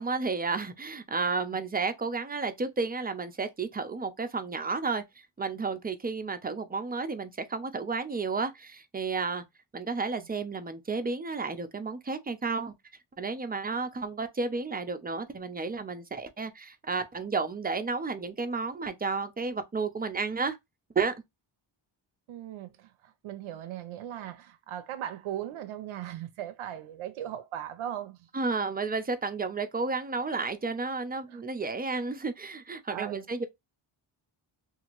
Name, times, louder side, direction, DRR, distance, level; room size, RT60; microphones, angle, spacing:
voice 1, 0.0-5.0 5.4-9.4 9.7-12.7 13.2-20.6 20.9-21.1 28.3-33.5, right 4 dB, 20° right, 0.5 m, -32 dB
voice 2, 22.3-28.2 31.3-31.4 32.9-33.2, right 11 dB, 75° right, 0.6 m, -38 dB
2.8 x 2.5 x 2.9 m
cardioid pair, 70°, 50 cm